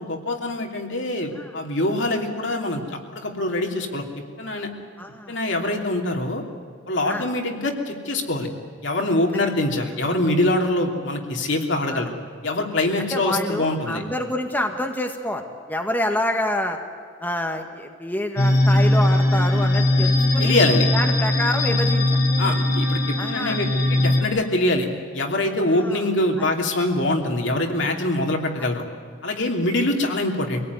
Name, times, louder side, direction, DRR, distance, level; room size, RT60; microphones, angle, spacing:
voice 1, 0.0-4.0 4.4-4.7 5.3-6.4 6.9-8.5 8.8-12.1 12.4-14.0 20.4-20.8 22.4-23.0 23.3-24.9 25.1-28.8 29.2-30.6, left 1 dB, 70° left, 2 dB, 3.0 m, -24 dB
voice 2, 5.0-5.4 7.0-7.3 9.3-9.5 11.9-12.1 13.1-15.4 15.7-16.8 17.2-20.6 20.9-22.5 23.2-23.6 25.7-26.0 26.4-26.5 28.6-28.7, left 1 dB, 10° left, 3 dB, 1.7 m, -27 dB
sound 1, 18.4-24.2, left 1 dB, 55° left, 3.7 m, -20 dB
25.0 x 18.0 x 9.6 m, 2.1 s
head